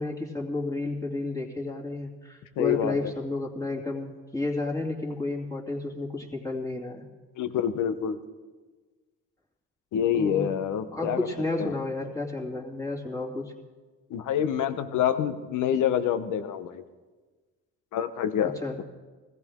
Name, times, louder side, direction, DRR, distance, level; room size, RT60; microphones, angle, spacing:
voice 1, 0.0-7.1 10.1-10.5 10.8-13.5 18.6-18.8, left 2 dB, 10° left, -2 dB, 2.6 m, -31 dB
voice 2, 2.6-3.1 7.4-8.2 9.9-11.3 11.6-11.7 14.1-16.8 17.9-18.8, left 9 dB, 85° left, 11 dB, 0.9 m, -27 dB
17.5 x 15.0 x 3.7 m, 1.3 s
cardioid pair, 90°, 30 cm